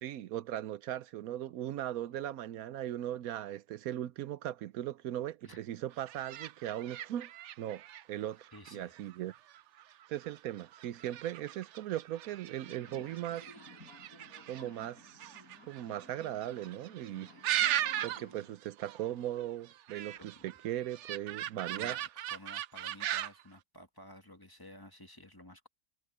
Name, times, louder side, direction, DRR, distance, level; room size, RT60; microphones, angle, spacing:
voice 1, 0.0-7.3 7.6-9.3 10.1-13.5 14.5-15.4 15.7-17.3 18.0-22.0, right 12 dB, 80° right, 1.1 m, -38 dB
sound 1, 5.9-18.4 18.7-19.1 19.4-23.4, right 12 dB, 65° right, 0.8 m, -39 dB
voice 2, 8.5-8.9 20.2-20.5 21.7-25.7, left 1 dB, 15° left, 1.8 m, -53 dB
Subway metro underground, 12.6-18.5, left 1 dB, 80° left, 5.6 m, -56 dB
omnidirectional pair, 1.5 m